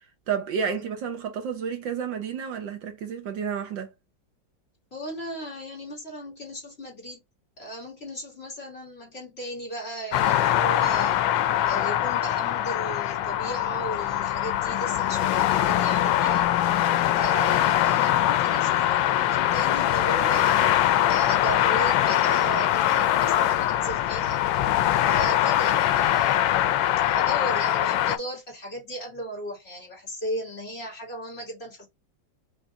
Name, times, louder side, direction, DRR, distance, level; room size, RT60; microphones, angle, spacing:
voice 1, 0.3-3.9, right 7 dB, 80° right, 1.7 m, -30 dB
voice 2, 4.9-7.2 7.6-11.2 11.7-16.5 17.2-24.4 25.1-26.5 27.1-31.9, right 1 dB, 35° left, 2.7 m, -36 dB
sound 1, 10.1-28.2, left 12 dB, 90° left, 1.3 m, -22 dB
6.0 x 3.1 x 2.6 m
omnidirectional pair, 2.0 m